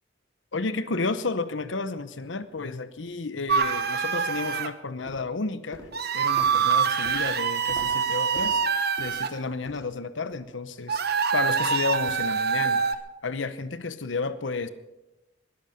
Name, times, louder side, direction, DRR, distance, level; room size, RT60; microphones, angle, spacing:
voice 1, 0.5-5.9 6.1-8.6 9.0-11.0 11.3-12.8 13.2-14.7, left 3 dB, 75° left, 0.9 m, -31 dB
sound 1, 2.4-2.5 3.0-3.1 3.7-4.0 4.3-4.8 5.1-10.0 10.3-10.6 10.9-11.1 11.7-11.8, equal, 20° left, 4.4 m, -48 dB
sound 2, 3.5-4.7 5.9-9.3 10.9-13.0, right 6 dB, 55° right, 1.0 m, -25 dB
21.0 x 11.5 x 5.2 m
head